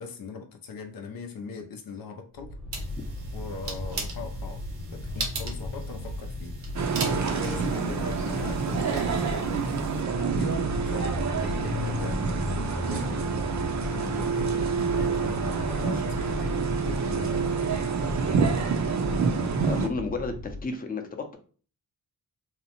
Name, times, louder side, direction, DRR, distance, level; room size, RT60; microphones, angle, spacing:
voice 1, 0.0-2.6 3.3-4.6 4.9-9.6 10.2-12.2 12.6-13.4 13.8-17.6, left 5 dB, 65° left, 0.5 m, -40 dB
sound 1, 2.3-20.7, left 1 dB, 85° left, 1.0 m, -35 dB
sound 2, 2.7-10.0, right 3 dB, 85° right, 0.9 m, -38 dB
sound 3, 6.7-19.9, right 5 dB, 50° right, 0.5 m, -28 dB
voice 2, 19.6-21.4, left 3 dB, 25° left, 0.6 m, -32 dB
2.8 x 2.1 x 2.8 m
cardioid pair, 75°, 38 cm